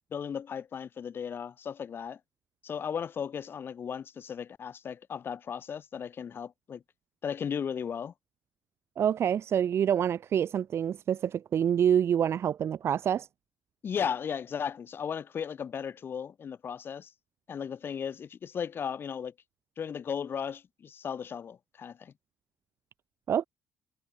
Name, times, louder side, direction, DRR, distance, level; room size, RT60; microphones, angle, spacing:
voice 1, 0.1-2.2 2.6-6.8 7.2-8.1 13.8-17.1 17.5-19.3 19.8-22.1, left 7 dB, 40° left, 5.1 m, -36 dB
voice 2, 9.0-13.3 23.3-23.4, right 9 dB, 45° right, 6.9 m, -26 dB
cardioid pair, 140°, 6 cm